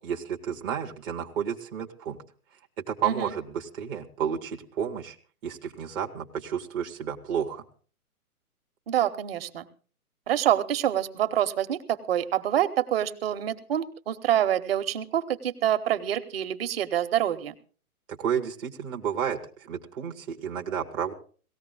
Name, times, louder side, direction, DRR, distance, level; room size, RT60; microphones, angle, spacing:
voice 1, 0.0-2.2 2.8-5.1 5.4-7.6 18.1-21.1, right 8 dB, 15° right, 0 dB, 0.7 m, -31 dB
voice 2, 3.0-3.3 8.9-9.7 10.3-17.6, right 11 dB, 40° right, 12 dB, 1.0 m, -26 dB
18.0 x 14.0 x 3.8 m, 0.40 s
figure-of-eight pair, 130°, 44 cm